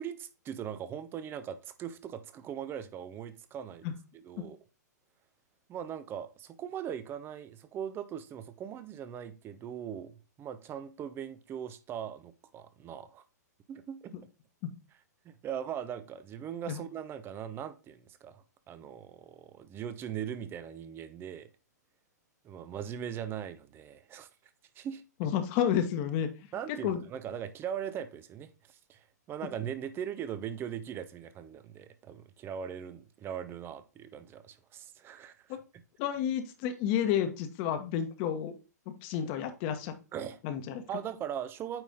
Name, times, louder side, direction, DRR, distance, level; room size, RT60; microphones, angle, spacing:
voice 1, 0.0-3.9 4.1-4.6 5.7-13.2 13.7-14.1 15.2-21.5 22.4-24.3 24.8-25.0 26.5-35.8 40.1-40.4 40.9-41.8, right 9 dB, 25° right, 0.8 m, -40 dB
voice 2, 25.2-26.3 26.8-27.0 35.5-35.6 36.0-38.5 38.9-39.9 40.4-40.8, left 9 dB, 40° left, 1.3 m, -30 dB
9.0 x 4.1 x 3.7 m
hypercardioid pair, 120°, 10 cm